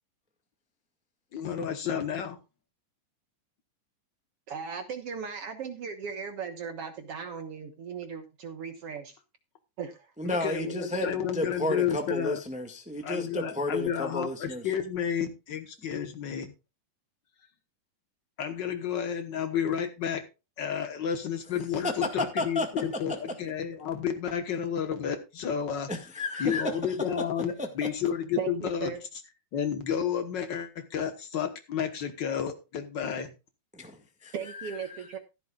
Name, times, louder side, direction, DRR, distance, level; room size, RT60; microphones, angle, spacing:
voice 1, 1.3-2.4 10.4-12.4 13.0-16.5 18.4-20.3 20.6-25.9 26.4-28.9 29.5-33.3, left 8 dB, 75° left, 7 dB, 1.0 m, -31 dB
voice 2, 4.5-9.2 9.8-10.4 28.4-29.0 34.3-35.2, right 6 dB, 60° right, 7 dB, 1.8 m, -37 dB
voice 3, 10.2-14.7 21.8-21.9 22.4-22.7 25.9-26.6 27.6-27.7 33.7-35.1, left 2 dB, 10° right, 5 dB, 0.5 m, -32 dB
15.0 x 12.0 x 2.4 m, 0.27 s
omnidirectional pair, 3.8 m